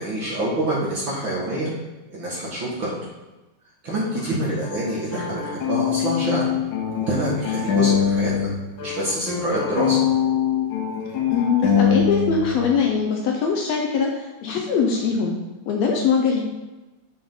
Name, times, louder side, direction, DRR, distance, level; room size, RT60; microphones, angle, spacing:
voice 1, 0.0-1.7 2.1-2.9 3.8-6.4 7.1-8.5 8.8-10.0, right 1 dB, 45° right, -6 dB, 2.2 m, -26 dB
sound 1, 4.6-8.5 8.8-12.6, left 8 dB, 90° left, 2.7 m, -23 dB
voice 2, 11.3-15.4 15.7-16.4, left 5 dB, 70° left, 1 dB, 1.9 m, -22 dB
7.1 x 6.6 x 3.8 m, 1.1 s
omnidirectional pair, 3.3 m